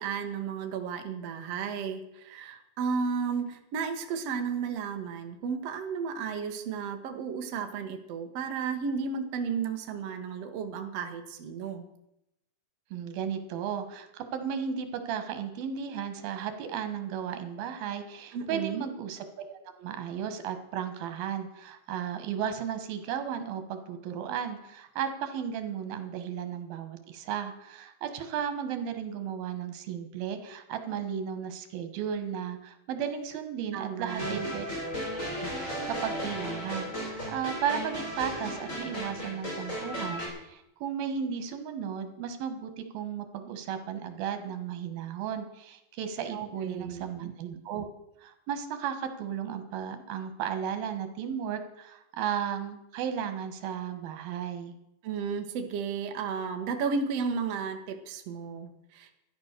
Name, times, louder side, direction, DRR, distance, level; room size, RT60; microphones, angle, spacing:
voice 1, 0.0-11.9 18.3-18.9 33.7-34.5 46.3-47.1 55.0-59.2, right 6 dB, 55° right, 5 dB, 2.0 m, -33 dB
voice 2, 12.9-34.7 35.1-47.9 48.2-54.7, right 8 dB, 85° right, 8 dB, 3.2 m, -35 dB
sound 1, 34.1-40.3, equal, 20° left, 3.9 m, -35 dB
13.5 x 10.5 x 6.6 m, 0.84 s
omnidirectional pair, 4.1 m